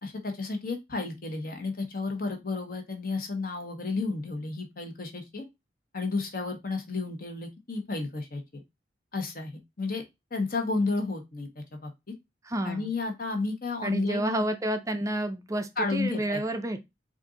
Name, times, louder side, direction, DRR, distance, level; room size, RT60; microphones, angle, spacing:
voice 1, 0.0-5.4 5.9-8.6 9.1-10.0 10.3-11.9 12.6-14.4 15.8-16.4, left 3 dB, 55° left, 1.2 m, -32 dB
voice 2, 12.4-12.9 13.8-16.9, right 1 dB, 20° right, 0.4 m, -30 dB
4.4 x 2.6 x 3.8 m
head